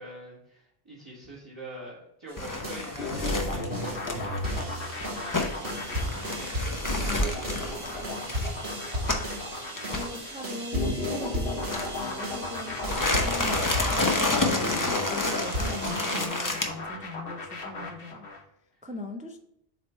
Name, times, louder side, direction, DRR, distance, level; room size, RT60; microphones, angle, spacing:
voice 1, 0.0-8.8 18.7-18.8, right 1 dB, 30° right, -6 dB, 1.5 m, -46 dB
sound 1, 2.3-16.3, equal, 90° right, 2.1 m, -35 dB
sound 2, 2.4-9.4 9.8-10.1 11.6-12.2 12.7-16.7, left 2 dB, 20° left, 0.7 m, -29 dB
sound 3, 3.0-18.4, left 3 dB, 65° left, 1.2 m, -36 dB
voice 2, 6.9-7.3 9.9-18.3 18.8-19.4, left 2 dB, 15° right, 3 dB, 0.3 m, -40 dB
7.6 x 3.2 x 4.3 m, 0.78 s
omnidirectional pair, 1.0 m